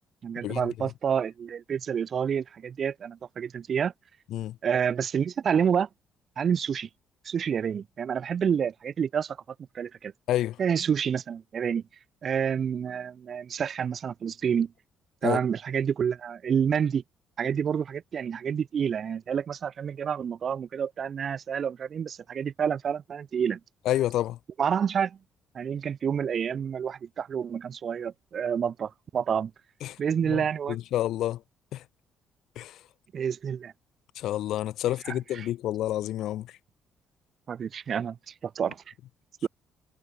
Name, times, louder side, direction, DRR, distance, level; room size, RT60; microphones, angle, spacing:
voice 1, 0.2-3.9 4.6-5.9 6.4-6.9 7.2-9.4 9.7-10.1 10.6-11.8 12.2-14.7 15.2-17.0 17.4-23.6 24.6-25.2 25.5-29.5 30.0-30.8 33.1-33.7 35.1-35.5 37.5-38.9 39.4-39.5, right 7 dB, 50° right, 0.7 m, -28 dB
voice 2, 23.9-24.4 29.8-30.0 30.3-31.4 31.7-31.8 32.6-32.8 34.2-36.5, left 13 dB, 75° left, 0.7 m, -29 dB
cardioid pair, 85°, 0 cm